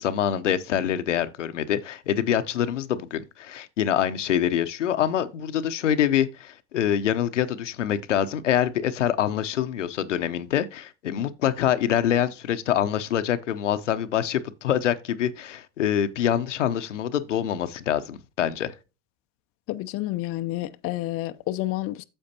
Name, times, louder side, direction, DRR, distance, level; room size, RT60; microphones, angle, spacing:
voice 1, 0.0-18.7, left 10 dB, 85° left, 0.8 m, -25 dB
voice 2, 19.7-22.0, left 16 dB, 40° left, 0.6 m, -29 dB
8.8 x 7.1 x 2.8 m
hypercardioid pair, 85°, 36 cm